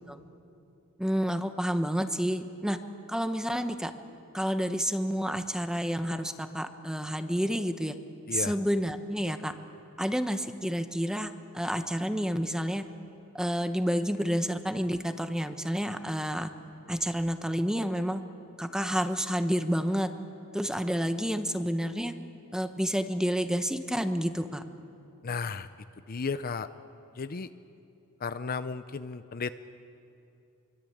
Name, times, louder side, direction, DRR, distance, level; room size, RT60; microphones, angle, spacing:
voice 1, 1.0-2.8 3.1-3.9 4.3-8.0 8.3-9.5 10.0-12.8 13.3-16.5 16.9-18.2 18.6-20.1 20.5-22.1 22.5-24.6, equal, 5° right, 8 dB, 1.1 m, -29 dB
voice 2, 25.2-25.7 26.1-26.7 27.1-27.5 28.2-29.5, left 5 dB, 40° left, 12 dB, 0.6 m, -34 dB
26.0 x 24.0 x 8.6 m, 2.8 s
head